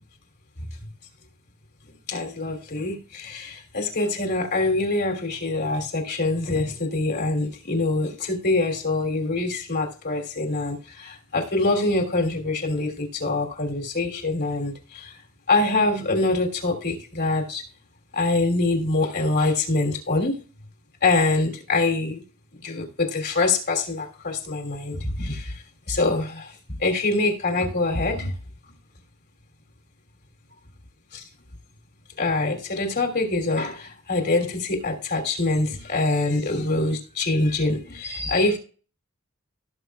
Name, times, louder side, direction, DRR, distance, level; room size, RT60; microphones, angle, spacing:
voice 1, 2.1-15.1 15.5-17.6 18.1-20.4 21.0-22.2 22.5-26.5 26.8-28.3 31.1-31.2 32.2-38.6, left 2 dB, 50° left, 3.0 m, -24 dB
17.5 x 7.5 x 2.3 m
head